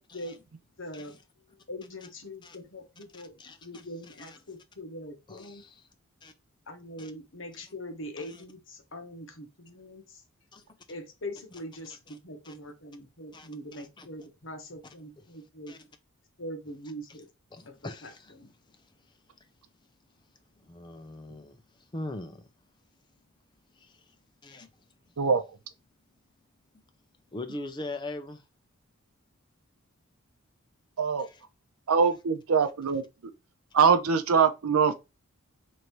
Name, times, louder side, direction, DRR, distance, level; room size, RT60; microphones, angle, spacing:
voice 1, 0.8-1.2 1.5-5.6 6.7-10.2 10.9-15.8 16.4-17.3 17.7-18.5, left 1 dB, 60° left, 1.0 m, -42 dB
voice 2, 3.1-4.4 5.3-5.9 6.2-6.3 7.0-7.1 8.2-8.4 10.5-10.6 12.4-12.5 13.3-13.5 14.0-14.1 15.7-15.8 17.5-18.2 18.7-18.9 20.6-21.6 21.9-22.5 23.8-24.0 24.4-24.7 27.3-28.4 31.2-31.4, left 2 dB, 20° left, 0.4 m, -41 dB
voice 3, 31.9-33.0 33.7-34.9, right 6 dB, 90° right, 0.6 m, -23 dB
3.1 x 2.6 x 4.4 m
head